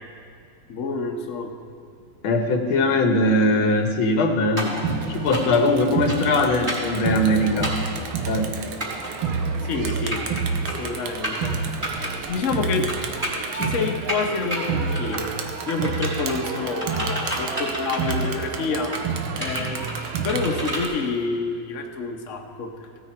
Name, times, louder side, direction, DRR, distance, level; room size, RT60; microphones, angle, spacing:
voice 1, 0.7-1.5 9.6-10.3 10.6-11.6 12.0-12.9 13.5-15.3 15.7-19.0 19.4-19.8 20.2-22.7, left 4 dB, 45° left, 3 dB, 1.1 m, -28 dB
voice 2, 2.2-4.8 5.1-8.0 8.3-8.4, left 2 dB, 85° left, 4 dB, 1.9 m, -21 dB
sound 1, 4.6-4.8 5.3-5.6 6.1-6.3 6.7-6.9 7.6-7.9 8.8-9.1 9.9-10.4 10.7-10.9 11.2-11.5 11.8-12.1 12.9-13.8 14.1-14.6 14.9-15.4 15.7-16.3 16.8-18.4 18.8-19.0 19.4-20.9, right 1 dB, 15° right, 3.1 m, -30 dB
Crowd, 4.8-20.9, right 5 dB, 90° right, 1.7 m, -29 dB
16.0 x 9.3 x 4.3 m, 2.4 s
omnidirectional pair, 2.2 m